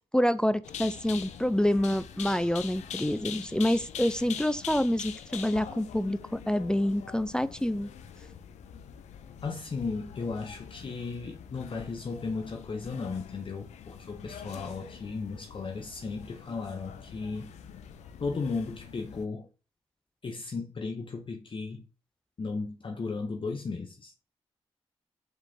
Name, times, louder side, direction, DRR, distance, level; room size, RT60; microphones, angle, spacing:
voice 1, 0.1-7.9, left 1 dB, 5° left, 0.3 m, -27 dB
sound 1, 0.6-19.2, left 8 dB, 90° left, 0.4 m, -44 dB
voice 2, 9.4-17.5 18.2-19.5 20.2-21.9 22.4-24.1, left 4 dB, 45° left, 0.7 m, -35 dB
4.9 x 3.8 x 2.7 m
supercardioid pair, 45°, 12 cm